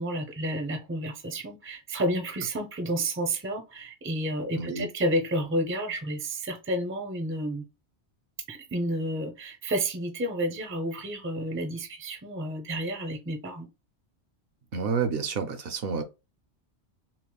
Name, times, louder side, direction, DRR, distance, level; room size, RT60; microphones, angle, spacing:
voice 1, 0.0-7.6 8.5-13.7, right 1 dB, 15° right, 0.5 m, -30 dB
voice 2, 4.5-4.9 14.7-16.0, right 5 dB, 65° right, 0.7 m, -29 dB
5.8 x 2.1 x 2.2 m
omnidirectional pair, 1.1 m